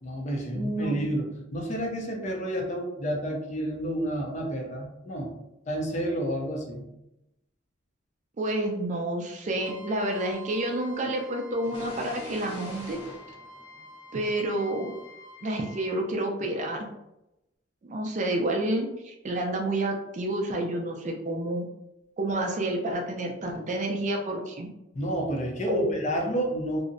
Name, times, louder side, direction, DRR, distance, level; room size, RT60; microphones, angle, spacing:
voice 1, 0.0-5.3 5.7-6.9 24.9-26.8, right 1 dB, 40° left, 0 dB, 0.5 m, -30 dB
voice 2, 0.5-1.1 8.4-13.0 14.1-15.0 15.4-16.9 17.8-21.6 22.2-24.7 25.7-25.9, right 1 dB, 40° right, 1 dB, 0.4 m, -29 dB
Trumpet, 9.6-16.0, equal, 20° right, 0.7 m, -48 dB
sound 1, 11.6-14.4, left 1 dB, 60° left, 0.9 m, -44 dB
2.6 x 2.0 x 2.5 m, 0.90 s
head